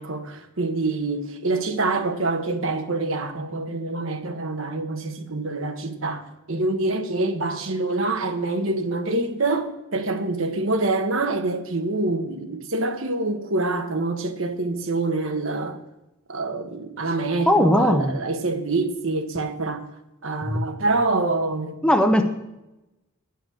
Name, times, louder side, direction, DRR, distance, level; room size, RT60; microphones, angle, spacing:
voice 1, 0.0-15.8 16.3-19.8 20.2-21.8, right 2 dB, 60° right, 1.0 m, -26 dB
voice 2, 17.5-18.2 20.5-20.6 21.8-22.2, left 1 dB, 5° left, 0.6 m, -18 dB
10.0 x 5.9 x 8.7 m
head